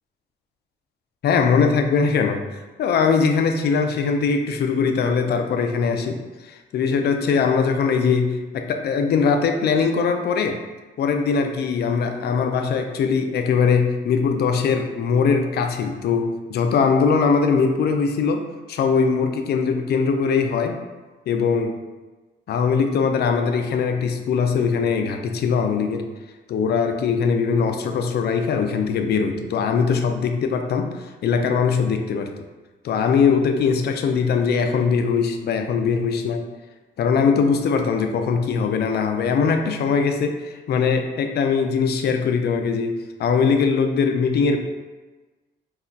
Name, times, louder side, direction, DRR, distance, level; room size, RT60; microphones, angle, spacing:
voice 1, 1.2-2.4 2.8-6.2 6.4-10.6 11.0-20.8 21.3-21.8 22.5-26.1 26.5-32.3 32.8-36.4 37.0-44.6, left 5 dB, 55° left, 5 dB, 0.4 m, -21 dB
2.3 x 2.1 x 3.8 m, 1.2 s
cardioid pair, 90°, 20 cm